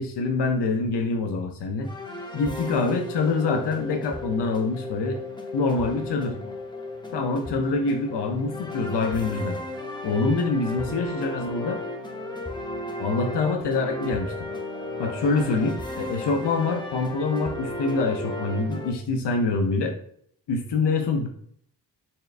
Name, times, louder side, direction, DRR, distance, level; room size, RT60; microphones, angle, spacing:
voice 1, 0.0-1.9 2.3-5.2 5.5-6.4 7.1-9.6 10.0-11.8 13.0-14.5 15.0-19.9 20.5-21.3, left 3 dB, 75° left, 2 dB, 0.7 m, -25 dB
sound 1, 1.8-18.9, left 2 dB, 10° left, 0.6 m, -35 dB
4.4 x 3.2 x 2.5 m, 0.65 s
wide cardioid pair, 85°, 42 cm